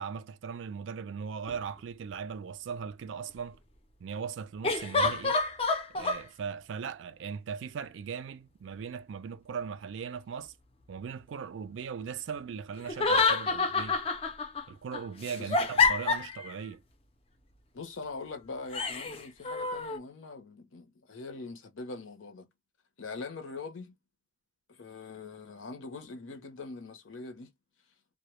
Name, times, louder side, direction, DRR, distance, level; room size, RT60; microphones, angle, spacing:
voice 1, 0.0-3.6 4.0-5.4 5.9-10.5 10.9-14.0 14.7-16.8, right 6 dB, 75° right, 0.3 m, -39 dB
sound 1, 1.5-1.6 4.6-6.2 12.9-14.6 14.9-16.5 18.7-20.0, left 4 dB, 30° left, 0.4 m, -28 dB
voice 2, 17.7-22.5 23.0-24.0 24.7-27.5, left 3 dB, 90° left, 0.7 m, -42 dB
2.1 x 2.0 x 2.9 m
head